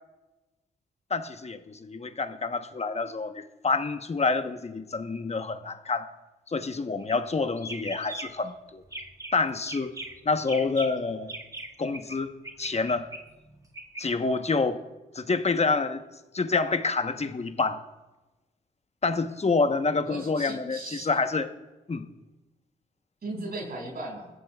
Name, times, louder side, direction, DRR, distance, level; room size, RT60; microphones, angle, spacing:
voice 1, 1.1-6.1 6.5-8.8 9.3-9.9 10.2-11.3 11.8-12.3 12.6-13.0 14.0-14.8 15.1-16.0 16.3-17.8 19.0-21.5 21.9-22.1, left 4 dB, 35° left, 9 dB, 1.1 m, -27 dB
sound 1, 7.0-7.3 7.6-8.5 8.8-9.4 9.7-12.2 12.4-14.0, right 1 dB, 20° right, 2.0 m, -40 dB
voice 2, 20.1-21.1 23.2-24.3, right 2 dB, 60° right, -1 dB, 5.8 m, -37 dB
20.0 x 14.0 x 2.4 m, 1.1 s
supercardioid pair, 50°, 18 cm